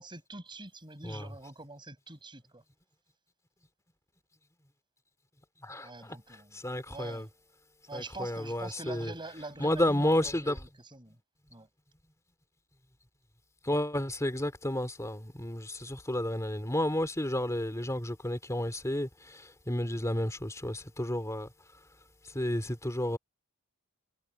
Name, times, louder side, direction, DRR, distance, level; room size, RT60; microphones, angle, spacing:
voice 1, 0.0-2.6 5.8-6.6 6.9-7.3 7.9-11.2 11.5-11.7, right 2 dB, 20° right, 7.8 m, -45 dB
voice 2, 6.5-7.3 7.9-9.1 9.6-10.6 13.6-21.5 22.3-23.2, left 1 dB, 15° left, 3.0 m, -31 dB
head